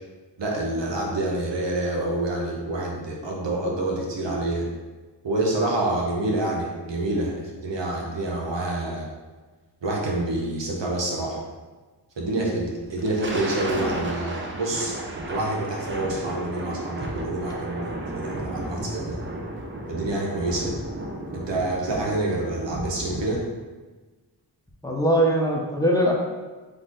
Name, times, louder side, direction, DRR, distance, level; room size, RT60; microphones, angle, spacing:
voice 1, 0.4-4.7 5.2-9.1 9.8-11.5 12.2-15.0 15.3-19.2 19.9-20.7 21.3-23.4, right 2 dB, 90° right, -2 dB, 1.0 m, -27 dB
Thunder, 12.8-23.6, right 1 dB, 30° right, 0.6 m, -33 dB
voice 2, 24.8-26.1, right 1 dB, 10° left, -2 dB, 0.8 m, -21 dB
4.0 x 3.3 x 3.9 m, 1.3 s
wide cardioid pair, 100°, 42 cm